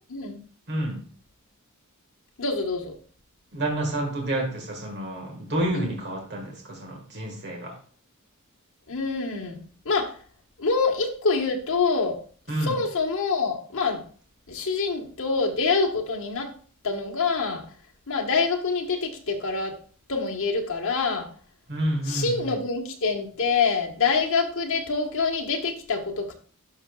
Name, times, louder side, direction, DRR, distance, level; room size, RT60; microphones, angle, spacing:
voice 1, 0.7-1.0 3.5-7.8 12.5-12.8 21.7-22.4, right 1 dB, 50° right, 1 dB, 1.7 m, -29 dB
voice 2, 2.4-3.0 5.7-5.9 8.9-10.2 10.6-12.2 12.6-14.0 14.5-16.5 16.8-17.6 18.1-19.7 20.1-21.3 22.1-26.3, left 4 dB, 65° left, 1 dB, 1.3 m, -26 dB
12.0 x 5.8 x 2.3 m, 0.43 s
head